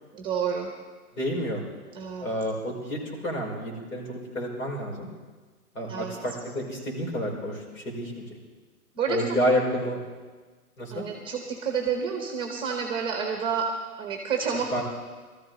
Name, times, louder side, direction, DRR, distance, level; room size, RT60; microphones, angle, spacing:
voice 1, 0.1-0.7 1.9-2.3 5.9-6.2 8.9-9.2 10.9-13.7 14.0-14.8, right 6 dB, 10° right, 3 dB, 1.0 m, -29 dB
voice 2, 1.1-1.6 2.2-5.1 5.7-8.2 9.1-10.0 10.8-11.0 14.7-14.8, equal, 65° left, -1 dB, 4.9 m, -29 dB
18.5 x 14.0 x 3.9 m, 1.4 s
hypercardioid pair, 140°, 45 cm